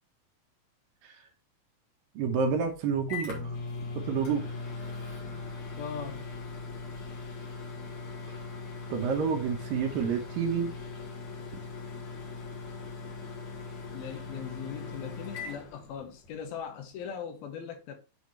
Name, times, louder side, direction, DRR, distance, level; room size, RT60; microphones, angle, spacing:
voice 1, 2.2-3.5 4.1-4.5 8.9-10.7, right 6 dB, 70° right, 2.5 m, -29 dB
Microwave oven, 2.4-16.4, left 4 dB, 50° left, 2.9 m, -40 dB
voice 2, 5.8-6.3 13.9-17.9, left 7 dB, 75° left, 2.8 m, -40 dB
8.4 x 4.1 x 3.1 m
omnidirectional pair, 4.5 m